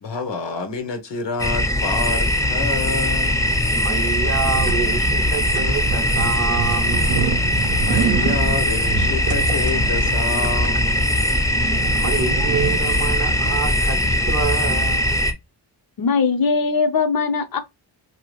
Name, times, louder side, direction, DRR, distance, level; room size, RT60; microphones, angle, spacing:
voice 1, 0.0-3.4 7.8-11.0, left 4 dB, 80° left, 0.9 m, -28 dB
sound 1, 1.4-15.3, left 1 dB, 10° left, 0.4 m, -20 dB
voice 2, 3.8-7.3 11.9-14.0 14.3-15.2, right 5 dB, 40° right, 0.6 m, -27 dB
sound 2, 4.5-13.5, right 6 dB, 80° right, 0.5 m, -28 dB
voice 3, 16.0-17.6, left 5 dB, 55° left, 0.6 m, -20 dB
2.8 x 2.4 x 3.0 m
wide cardioid pair, 95°, 42 cm